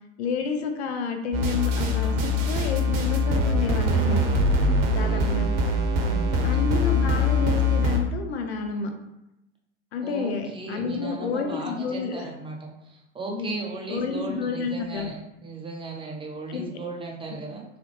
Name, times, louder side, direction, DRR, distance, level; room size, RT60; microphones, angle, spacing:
voice 1, 0.2-4.2 4.9-5.5 6.4-8.9 9.9-12.3 13.3-13.5 13.9-15.1 16.5-16.6, left 5 dB, 60° left, 5 dB, 0.7 m, -30 dB
sound 1, 1.3-8.0, left 1 dB, 50° right, 0.8 m, -23 dB
voice 2, 4.8-5.3 6.0-6.8 10.0-17.6, right 3 dB, 15° right, 0 dB, 0.6 m, -37 dB
3.7 x 3.2 x 3.2 m, 0.89 s
figure-of-eight pair, 85°, 37 cm